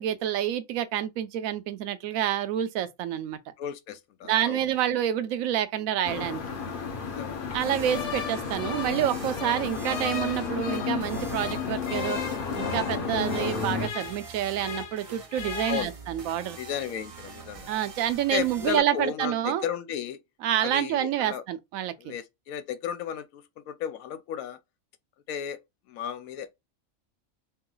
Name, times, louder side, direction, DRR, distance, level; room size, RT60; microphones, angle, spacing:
voice 1, 0.0-3.5 4.2-6.4 7.5-12.2 12.6-16.6 17.7-19.7 20.4-22.1, right 11 dB, 80° right, 1.0 m, -28 dB
voice 2, 3.6-4.6 7.0-7.6 15.7-15.9 16.6-17.7 18.3-20.2 20.6-21.4 22.0-24.6 25.3-25.6 25.9-26.5, left 9 dB, 85° left, 1.0 m, -34 dB
sound 1, 6.0-13.9, left 5 dB, 50° left, 0.7 m, -32 dB
sound 2, 7.6-18.8, right 5 dB, 40° right, 0.5 m, -45 dB
sound 3, 7.8-11.0 11.4-15.0 15.3-15.8, left 7 dB, 65° left, 1.2 m, -37 dB
3.2 x 2.9 x 3.7 m
omnidirectional pair, 1.4 m